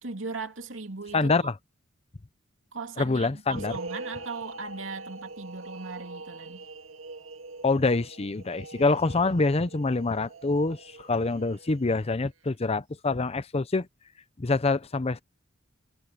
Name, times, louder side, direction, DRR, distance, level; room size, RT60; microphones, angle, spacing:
voice 1, 0.0-1.5 2.7-6.7, right 4 dB, 70° right, 3.0 m, -38 dB
voice 2, 1.1-1.6 3.0-3.8 7.6-13.9 14.4-15.2, left 3 dB, 30° left, 0.7 m, -26 dB
sound 1, 3.5-12.0, right 3 dB, 85° right, 1.9 m, -43 dB
head